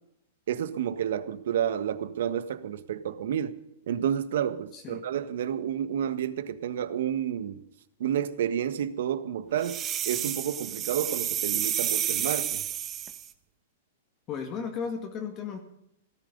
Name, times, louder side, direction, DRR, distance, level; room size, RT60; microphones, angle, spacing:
voice 1, 0.5-3.6 3.9-7.6 8.0-12.6, right 9 dB, 70° right, 12 dB, 1.5 m, -30 dB
voice 2, 4.7-5.0 14.3-15.6, left 6 dB, 25° left, 3 dB, 2.0 m, -35 dB
sound 1, 9.6-13.3, right 10 dB, 20° right, 1.0 m, -30 dB
17.5 x 14.5 x 5.4 m, 0.77 s
supercardioid pair, 160°, 0 cm